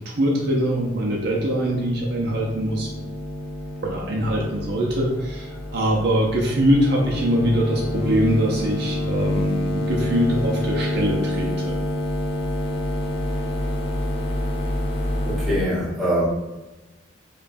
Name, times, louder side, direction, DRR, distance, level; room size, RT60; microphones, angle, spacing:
voice 1, 0.0-2.9 3.8-11.7, equal, 55° right, -2 dB, 0.5 m, -23 dB
sound 1, 0.6-15.6, left 1 dB, 30° left, 0.4 m, -28 dB
voice 2, 15.2-16.3, equal, ahead, -10 dB, 1.2 m, -23 dB
5.1 x 2.2 x 2.6 m, 1.0 s
head